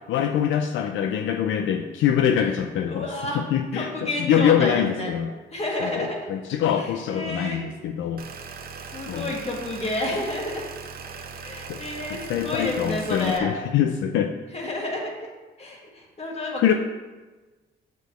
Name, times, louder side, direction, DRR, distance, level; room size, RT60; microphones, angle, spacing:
voice 1, 0.1-3.1 3.3-5.3 5.8-8.2 9.1-9.3 11.7-11.8 12.1-14.3 16.6-16.7, left 9 dB, 75° left, 6 dB, 0.4 m, -24 dB
voice 2, 2.9-3.4 3.7-5.1 5.5-6.2 6.7-7.6 8.9-10.6 11.4-13.5 14.5-15.3 15.6-16.7, left 1 dB, 30° left, -1 dB, 1.8 m, -30 dB
sound 1, 8.2-13.4, right 5 dB, 50° right, 0.7 m, -39 dB
7.1 x 6.7 x 3.0 m, 1.2 s
cardioid pair, 90°, 20 cm